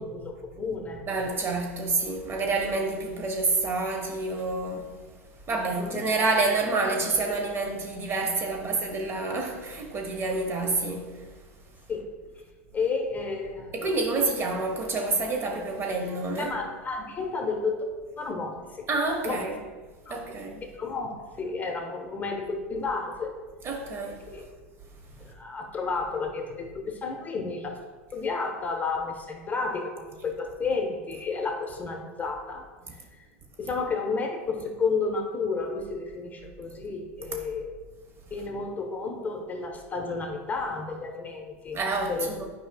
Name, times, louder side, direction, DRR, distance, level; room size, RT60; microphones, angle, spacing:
voice 1, 0.0-1.0 5.9-6.0 11.9-12.0 12.7-13.9 16.4-17.8 18.2-18.9 19.2-19.4 20.1-20.2 20.8-23.3 24.3-24.5 25.1-27.8 28.1-32.6 33.2-33.3 33.6-37.8 38.3-41.8 42.1-42.3, left 4 dB, 25° left, 1.0 m, -31 dB
voice 2, 1.1-4.9 5.5-11.2 13.7-16.5 18.9-19.6 20.1-20.6 23.6-24.3 41.7-42.5, right 3 dB, 35° right, 1.1 m, -28 dB
9.0 x 4.9 x 2.3 m
hypercardioid pair, 85°, 7 cm